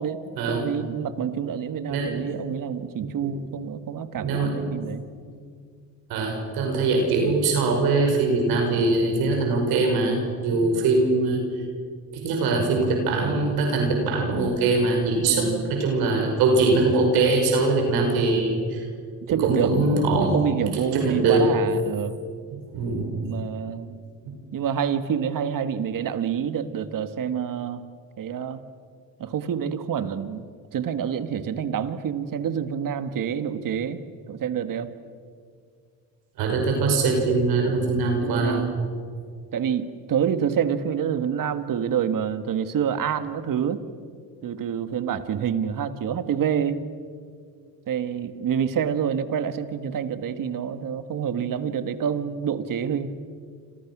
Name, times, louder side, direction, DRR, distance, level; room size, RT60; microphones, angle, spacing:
voice 1, 0.0-5.0 10.5-10.8 15.2-15.7 18.0-18.1 19.3-19.7 20.2-22.2 23.2-23.9 24.5-27.8 28.2-28.6 29.2-30.5 30.7-34.0 34.3-34.9 38.2-38.8 39.5-43.8 44.4-46.8 47.9-53.1, right 8 dB, 60° right, 10 dB, 1.8 m, -27 dB
voice 2, 1.9-2.2 3.0-3.3 4.2-4.7 6.1-11.4 12.1-18.8 19.4-20.4 20.7-21.5 22.5-23.2 36.4-38.6, right 3 dB, 85° right, 2 dB, 5.8 m, -22 dB
29.0 x 27.0 x 6.2 m, 2.1 s
supercardioid pair, 75°, 36 cm